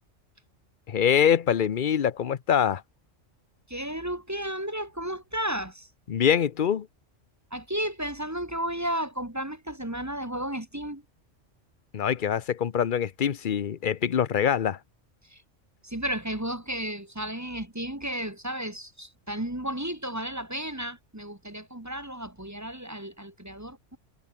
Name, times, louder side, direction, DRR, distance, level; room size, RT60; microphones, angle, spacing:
voice 1, 0.9-2.8 6.1-6.9 11.9-14.8, left 8 dB, 45° left, 0.8 m, -24 dB
voice 2, 3.7-5.9 7.5-11.0 15.3-15.4 15.8-24.0, right 1 dB, 15° right, 1.7 m, -33 dB
omnidirectional pair, 1.3 m